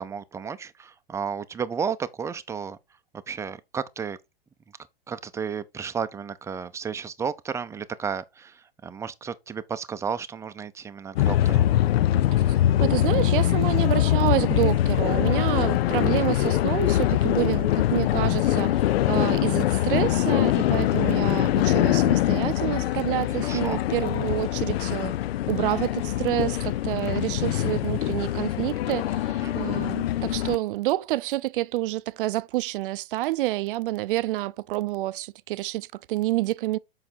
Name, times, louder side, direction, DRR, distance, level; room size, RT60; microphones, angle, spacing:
voice 1, 0.0-2.8 3.3-4.2 5.1-11.7 15.3-15.5 23.4-23.8 29.4-29.6, right 6 dB, 10° right, 0.5 m, -33 dB
sound 1, 11.2-30.6, left 13 dB, 80° left, 0.4 m, -23 dB
voice 2, 12.5-18.8 19.1-25.2 25.5-36.8, right 16 dB, 60° right, 0.5 m, -28 dB
7.1 x 5.7 x 4.5 m
hypercardioid pair, 125°, 30 cm